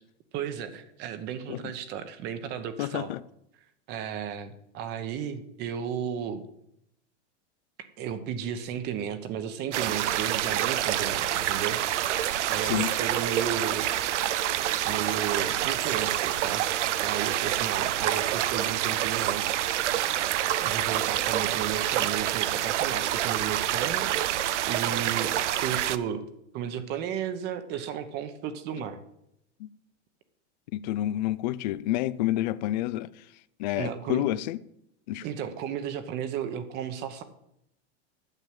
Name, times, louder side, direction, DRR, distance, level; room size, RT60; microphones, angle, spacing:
voice 1, 0.3-3.1 3.9-6.4 8.0-12.2 12.5-13.9 14.8-19.6 20.6-25.3 25.6-26.2 26.5-29.0 33.8-34.4 35.2-37.2, right 8 dB, 30° right, 0.9 m, -34 dB
voice 2, 2.8-3.2 12.6-13.0 29.6-29.7 30.7-33.2 33.6-34.6 35.1-35.2, left 15 dB, 40° left, 0.4 m, -29 dB
sound 1, 9.7-26.0, right 12 dB, 90° right, 0.7 m, -27 dB
9.1 x 7.1 x 7.8 m
supercardioid pair, 160°, 34 cm